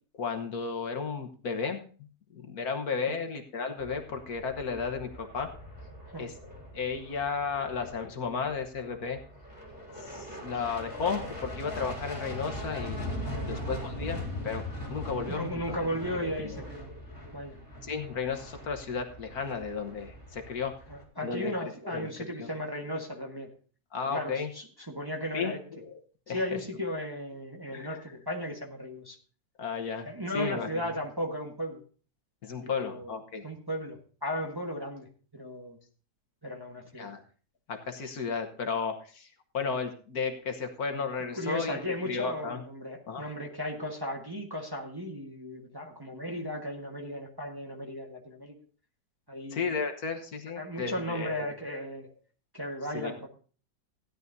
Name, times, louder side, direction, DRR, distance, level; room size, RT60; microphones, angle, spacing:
voice 1, 0.2-1.8 2.3-5.5 6.2-6.4 6.7-9.2 10.0-14.6 14.9-15.6 16.0-16.6 16.9-17.3 17.8-20.8 21.2-21.5 21.8-22.5 23.9-24.5 25.3-26.0 26.3-26.4 27.7-28.1 29.6-30.1 30.3-30.7 32.4-33.5 37.0-37.2 37.7-42.6 43.1-43.2 49.5-51.8 52.9-53.1, left 5 dB, 60° left, 5 dB, 1.6 m, -34 dB
sound 1, 3.8-21.0, left 1 dB, 10° left, 3.4 m, -41 dB
voice 2, 13.2-13.6 15.3-16.9 17.3-17.6 20.9-23.5 24.1-25.6 26.3-29.2 30.0-31.8 32.6-33.1 33.4-35.1 35.3-35.8 36.4-37.1 41.4-48.6 49.3-49.6 50.5-52.1 52.5-53.3, equal, 15° right, 0 dB, 1.4 m, -36 dB
16.5 x 11.0 x 2.7 m, 0.40 s
omnidirectional pair, 1.8 m